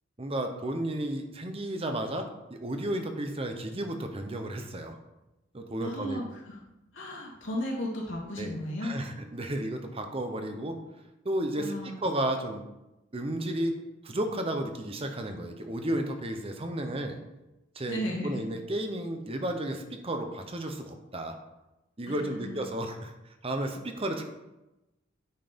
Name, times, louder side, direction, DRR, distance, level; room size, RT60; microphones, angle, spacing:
voice 1, 0.2-5.0 5.5-6.2 8.4-10.8 11.2-12.6 13.1-13.8 14.0-17.2 17.7-21.4 22.0-24.2, right 1 dB, 30° right, 5 dB, 0.9 m, -33 dB
voice 2, 5.8-6.6 6.9-9.0 11.6-12.0 17.9-18.4 22.1-22.7, left 1 dB, 75° left, -3 dB, 2.6 m, -35 dB
9.3 x 4.6 x 5.2 m, 0.96 s
head